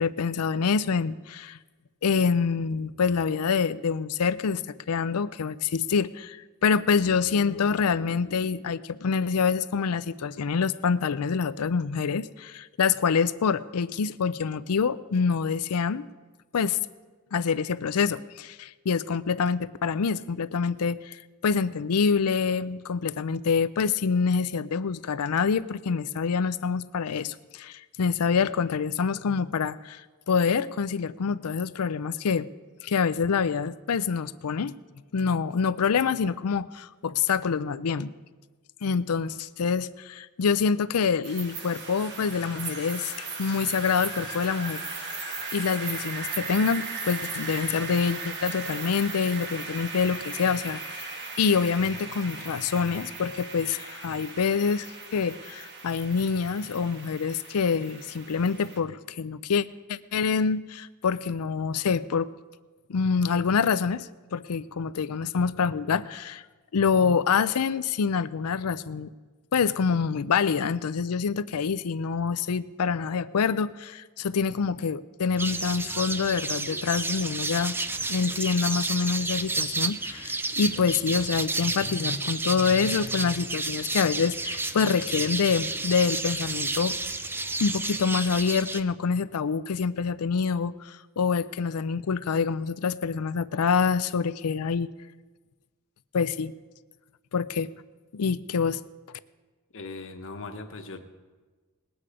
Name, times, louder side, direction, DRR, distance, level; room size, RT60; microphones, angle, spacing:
voice 1, 0.0-1.6 2.0-4.6 4.9-6.4 6.6-16.1 16.5-16.8 17.3-32.5 32.8-34.8 35.1-38.1 38.8-45.1 45.5-54.9 55.1-62.3 62.9-66.4 66.7-69.1 69.5-77.7 78.1-87.0 87.6-94.9 96.1-96.5 97.3-97.7 98.1-98.8, left 5 dB, 75° left, 16 dB, 0.5 m, -26 dB
sound 1, 41.2-58.8, right 4 dB, 50° right, 1.5 m, -37 dB
sound 2, 75.4-88.8, right 3 dB, 10° right, 0.4 m, -31 dB
voice 2, 99.7-101.0, left 3 dB, 60° left, 6 dB, 1.2 m, -39 dB
20.0 x 8.8 x 5.0 m, 1.3 s
head